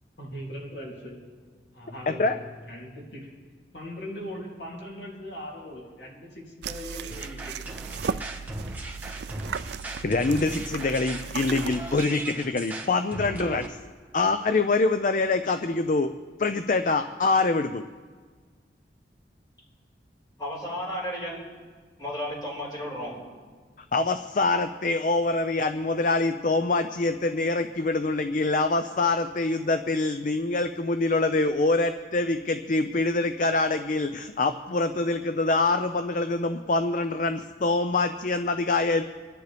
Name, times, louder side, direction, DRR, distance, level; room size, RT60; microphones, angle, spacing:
voice 1, 0.2-1.5 1.7-3.4 3.7-7.9, equal, 75° left, -3 dB, 2.9 m, -40 dB
voice 2, 2.1-2.4 10.0-13.8 14.1-16.1 16.4-17.8 23.9-39.0, left 3 dB, 45° left, 9 dB, 0.5 m, -25 dB
sound 1, 6.6-12.1, right 6 dB, 70° right, 0.4 m, -36 dB
sound 2, 7.1-13.7, right 2 dB, 10° right, 1.2 m, -37 dB
voice 3, 20.4-21.4 22.0-23.1, equal, 20° left, -6 dB, 5.0 m, -33 dB
25.5 x 10.5 x 3.4 m, 1.5 s
head